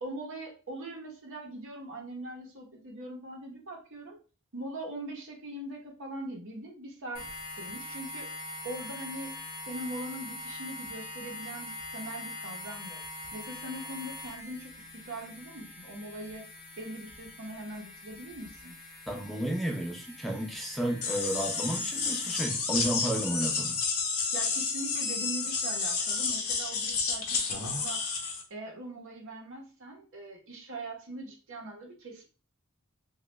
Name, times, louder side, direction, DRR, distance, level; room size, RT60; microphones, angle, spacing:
voice 1, 0.0-4.2 4.5-7.3 7.6-8.3 8.6-9.3 9.6-13.0 13.3-16.4 16.8-18.7 24.3-28.0 28.5-32.2, right 1 dB, 60° right, 0 dB, 0.8 m, -41 dB
sound 1, 7.1-22.4, left 2 dB, 45° left, 1.1 m, -43 dB
voice 2, 19.1-23.8, right 1 dB, ahead, 1 dB, 0.6 m, -32 dB
sound 2, 21.0-28.4, left 5 dB, 70° left, 0.7 m, -31 dB
3.1 x 2.3 x 3.1 m, 0.36 s
head